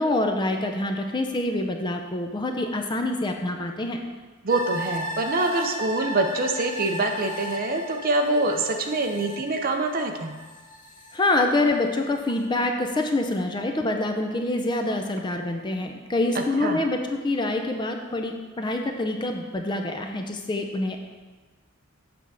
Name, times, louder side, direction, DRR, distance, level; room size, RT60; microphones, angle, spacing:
voice 1, 0.0-4.0 11.1-21.0, left 2 dB, 20° left, 4 dB, 0.5 m, -26 dB
voice 2, 4.4-10.3 16.6-16.8, right 2 dB, 45° right, 4 dB, 0.6 m, -25 dB
sound 1, 4.5-11.8 12.2-12.3, equal, 40° left, 1.1 m, -36 dB
7.9 x 3.5 x 6.2 m, 1.3 s
head